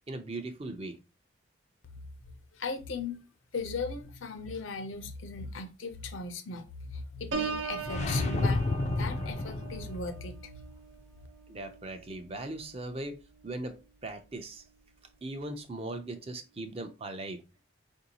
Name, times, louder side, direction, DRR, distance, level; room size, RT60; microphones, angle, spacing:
voice 1, 0.1-1.0 11.5-13.2 13.4-14.6 15.2-17.6, right 2 dB, 30° right, 0.5 m, -39 dB
voice 2, 2.5-3.3 3.5-10.5, left 4 dB, 85° left, 0.7 m, -38 dB
Piano, 7.3-12.9 13.4-13.8, right 5 dB, 75° right, 0.7 m, -40 dB
sound 1, 7.8-10.0, left 2 dB, 35° left, 0.3 m, -30 dB
4.6 x 2.6 x 2.8 m
head